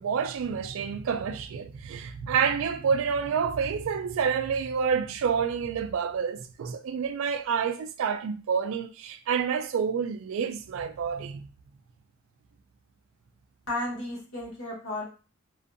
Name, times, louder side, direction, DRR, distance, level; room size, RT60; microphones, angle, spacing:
voice 1, 0.0-11.5, right 6 dB, 70° right, 0.3 m, -28 dB
voice 2, 13.7-15.0, left 2 dB, 80° left, 1.3 m, -33 dB
2.5 x 2.4 x 2.5 m
head